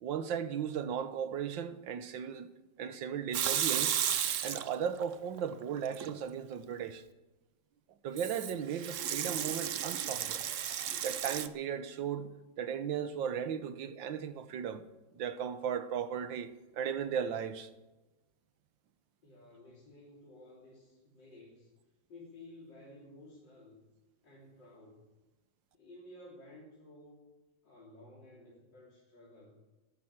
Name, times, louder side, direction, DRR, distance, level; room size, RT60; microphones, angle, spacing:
voice 1, 0.0-2.5 2.8-4.0 4.4-7.0 8.0-10.4 11.0-14.8 15.1-17.7, right 8 dB, 80° right, 1.7 m, -36 dB
Water tap faucet / Sink (filling or washing) / Liquid, 3.3-5.0 5.4-6.1 8.2-11.5, right 9 dB, 60° right, 0.8 m, -33 dB
voice 2, 19.2-21.7 22.1-23.8 24.2-25.1 25.7-27.3 27.6-29.6, left 1 dB, 70° left, 4.2 m, -54 dB
14.0 x 12.0 x 7.4 m
omnidirectional pair, 2.0 m